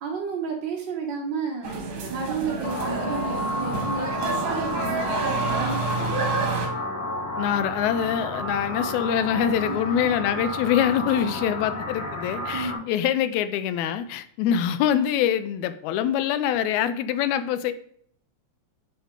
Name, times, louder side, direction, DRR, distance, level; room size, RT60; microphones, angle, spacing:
voice 1, 0.0-1.7 2.1-6.3 9.6-9.9 12.5-12.8, right 5 dB, 75° right, -1 dB, 1.0 m, -32 dB
sound 1, 1.6-6.7, right 4 dB, 55° right, 1.6 m, -29 dB
sound 2, 2.6-12.8, left 1 dB, 60° left, 1.3 m, -31 dB
voice 2, 7.4-17.7, left 9 dB, 80° left, 12 dB, 1.9 m, -24 dB
6.8 x 5.5 x 3.7 m, 0.62 s
omnidirectional pair, 3.4 m